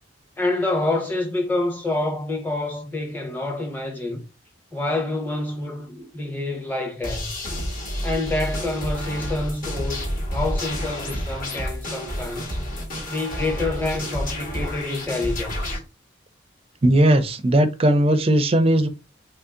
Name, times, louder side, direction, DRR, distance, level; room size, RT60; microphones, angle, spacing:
voice 1, 0.4-4.2 4.7-7.3 8.0-12.6 13.1-15.8, left 2 dB, 10° left, 0.8 m, -27 dB
sound 1, 7.0-15.8, equal, 45° left, 1.4 m, -29 dB
voice 2, 16.8-18.9, right 1 dB, 30° right, 0.4 m, -18 dB
2.8 x 2.7 x 3.6 m
head